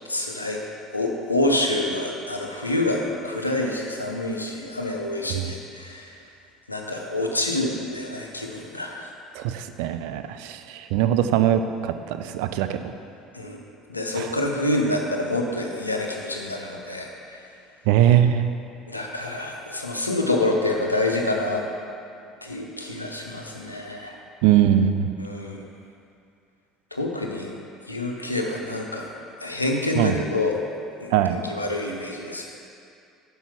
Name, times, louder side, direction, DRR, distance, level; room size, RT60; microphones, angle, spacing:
voice 1, 0.1-0.6 0.9-6.1 6.7-9.1 13.3-13.6 13.9-17.4 18.9-21.6 22.4-24.1 25.2-25.6 26.9-27.5 27.9-29.1 29.4-30.6 31.0-32.5, left 2 dB, 85° left, 0 dB, 0.6 m, -27 dB
voice 2, 9.3-12.8 14.2-14.3 17.9-18.5 24.4-25.1 30.0-30.2 31.1-31.4, right 11 dB, 60° right, 9 dB, 0.3 m, -21 dB
5.6 x 5.5 x 5.8 m, 2.5 s
figure-of-eight pair, 60°, 0 cm